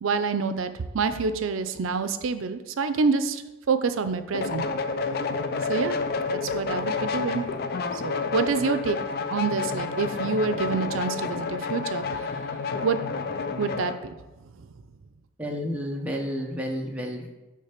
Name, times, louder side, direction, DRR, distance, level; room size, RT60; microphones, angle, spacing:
voice 1, 0.0-3.4 3.7-4.6 5.7-6.0 6.3-7.4 7.9-9.0 9.3-12.3 12.8-13.0 13.6-14.1, right 5 dB, 75° right, 11 dB, 0.5 m, -27 dB
sound 1, 4.3-14.0, left 4 dB, 50° left, 0.4 m, -29 dB
voice 2, 15.4-17.3, equal, 5° right, 0 dB, 0.6 m, -31 dB
6.6 x 3.3 x 5.8 m, 1.1 s
head